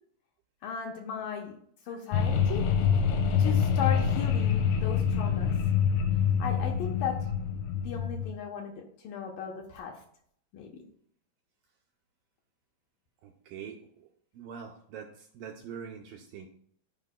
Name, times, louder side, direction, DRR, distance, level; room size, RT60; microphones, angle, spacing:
voice 1, 0.6-1.5 1.9-2.7 3.4-5.5 6.4-7.2 7.8-10.0 10.5-10.8, left 7 dB, 70° left, 0 dB, 2.4 m, -36 dB
sound 1, 2.1-8.3, left 7 dB, 90° left, 2.8 m, -26 dB
voice 2, 13.2-14.1 14.3-16.5, right 7 dB, 75° right, 1 dB, 2.2 m, -44 dB
13.5 x 5.2 x 2.2 m, 0.63 s
omnidirectional pair, 4.5 m